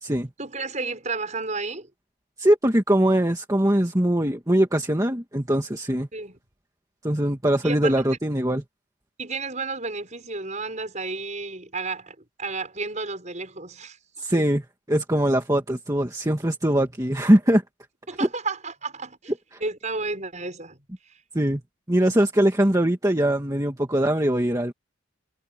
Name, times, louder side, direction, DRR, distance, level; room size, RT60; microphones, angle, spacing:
voice 1, 0.4-1.9 6.1-6.4 7.6-8.0 9.2-14.0 14.3-14.4 18.1-19.3 19.6-20.8, right 3 dB, 35° right, 7.0 m, -32 dB
voice 2, 2.4-6.1 7.0-8.6 14.2-14.6 14.9-17.6 18.2-18.3 21.3-21.6 21.9-24.7, right 1 dB, 15° right, 1.8 m, -21 dB
head